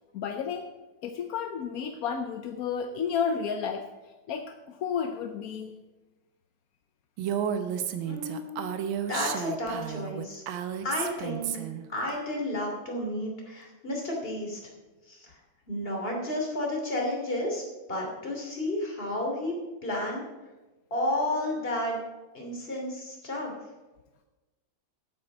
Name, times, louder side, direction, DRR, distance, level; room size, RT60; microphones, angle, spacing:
voice 1, 0.1-0.7 1.0-3.9 4.3-5.7, left 6 dB, 65° left, 6 dB, 0.9 m, -31 dB
Female speech woman speaking, 7.2-11.8, right 8 dB, 85° right, 1.6 m, -32 dB
voice 2, 8.0-8.5 9.1-10.4 10.8-11.5 11.9-14.6 15.1-15.4 15.7-17.6 17.9-19.5 19.8-20.2 20.9-22.0 22.3-23.5, left 1 dB, 30° left, -1 dB, 3.0 m, -31 dB
8.7 x 8.7 x 6.7 m, 1.1 s
omnidirectional pair, 2.1 m